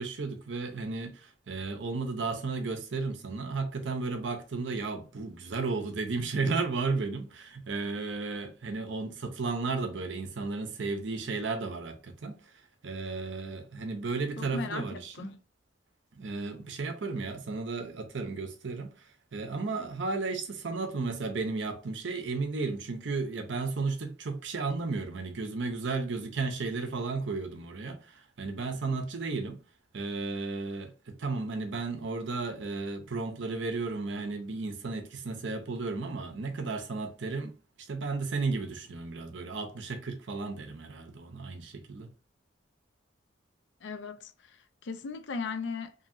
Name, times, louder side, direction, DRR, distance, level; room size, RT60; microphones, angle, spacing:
voice 1, 0.0-15.3 16.1-29.6 29.9-37.6 37.9-42.1, right 3 dB, 65° right, 0.6 m, -34 dB
voice 2, 14.4-15.4 43.8-45.9, left 4 dB, 60° left, 0.4 m, -37 dB
2.7 x 2.7 x 2.5 m
head